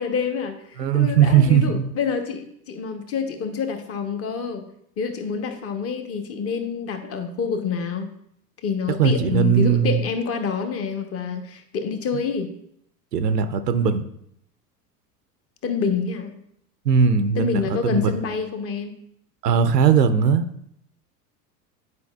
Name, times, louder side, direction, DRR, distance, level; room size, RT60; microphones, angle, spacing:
voice 1, 0.0-4.7 5.0-8.1 8.6-12.5 15.6-16.4 17.4-18.9, left 6 dB, 30° left, 7 dB, 0.8 m, -27 dB
voice 2, 0.8-1.9 9.0-10.0 13.1-14.1 16.9-18.2 19.4-20.5, right 7 dB, 85° right, 10 dB, 0.6 m, -19 dB
9.5 x 4.6 x 2.3 m, 0.72 s
figure-of-eight pair, 80°, 48 cm